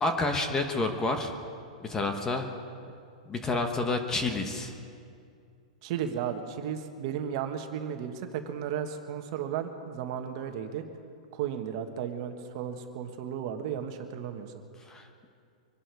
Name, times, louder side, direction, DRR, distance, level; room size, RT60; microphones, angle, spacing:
voice 1, 0.0-1.3 1.8-2.5 3.3-4.7 14.8-15.1, left 2 dB, 15° left, 5 dB, 1.1 m, -29 dB
voice 2, 5.8-10.8 11.3-14.5, right 8 dB, 45° right, 6 dB, 1.4 m, -34 dB
24.5 x 11.0 x 4.8 m, 2.4 s
hypercardioid pair, 155°, 4 cm